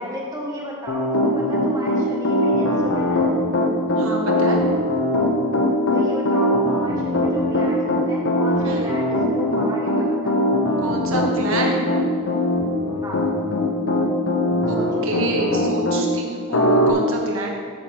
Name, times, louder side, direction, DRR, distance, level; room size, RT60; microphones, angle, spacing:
voice 1, 0.0-3.3 5.9-10.4 13.0-13.2 14.8-15.1, equal, 15° right, -4 dB, 1.5 m, -34 dB
Piano, 0.9-16.0 16.5-16.9, left 1 dB, 75° left, 0.9 m, -20 dB
voice 2, 4.0-4.6 8.6-8.9 10.8-11.9 14.7-17.5, right 2 dB, 75° right, 0 dB, 1.4 m, -27 dB
13.5 x 6.4 x 2.9 m, 2.1 s
head